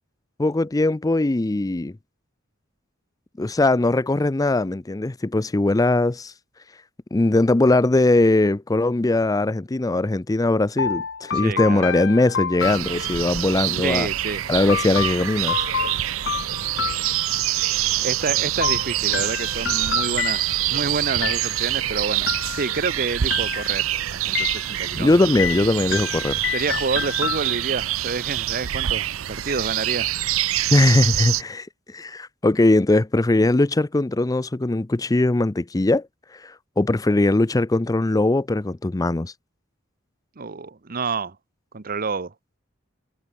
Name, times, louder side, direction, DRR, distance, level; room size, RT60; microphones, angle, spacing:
voice 1, 0.4-1.9 3.4-6.3 7.1-14.1 14.5-15.6 25.0-26.4 30.7-36.0 36.4-39.3, left 2 dB, 20° left, 0.5 m, -20 dB
sound 1, 10.8-13.5 14.7-17.7 18.6-20.8 21.2-21.8 22.3-22.9 23.3-23.9 24.3-25.0 25.4-27.9, left 7 dB, 60° left, 1.5 m, -29 dB
voice 2, 11.3-11.9 13.8-14.4 18.0-23.8 24.1-25.2 26.5-30.1 40.4-41.3 41.7-42.3, right 4 dB, 45° right, 1.0 m, -28 dB
sound 2, 12.6-31.4, right 13 dB, 85° right, 0.6 m, -25 dB
head